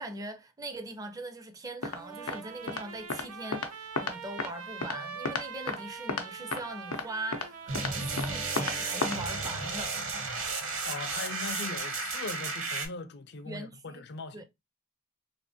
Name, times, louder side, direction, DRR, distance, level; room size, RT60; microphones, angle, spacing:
voice 1, 0.0-10.0 13.4-14.0 14.3-14.4, right 2 dB, 15° right, 0.5 m, -41 dB
sound 1, 1.8-2.0 2.3-2.4 2.7-2.8 3.1-3.2 3.5-3.7 4.0-4.5 4.8-5.0 5.3-5.8 6.1-6.3 6.5-6.6 6.9-7.1 7.3-7.5 7.8-7.9 8.2-8.3 8.6-8.8 9.0-9.2 9.4-9.5, left 4 dB, 90° left, 0.7 m, -32 dB
Trumpet, 1.9-9.1, right 6 dB, 85° right, 0.6 m, -44 dB
sound 2, 7.7-12.9, right 3 dB, 65° right, 0.9 m, -33 dB
voice 2, 10.9-14.4, left 4 dB, 50° left, 0.5 m, -40 dB
3.2 x 2.9 x 2.7 m
head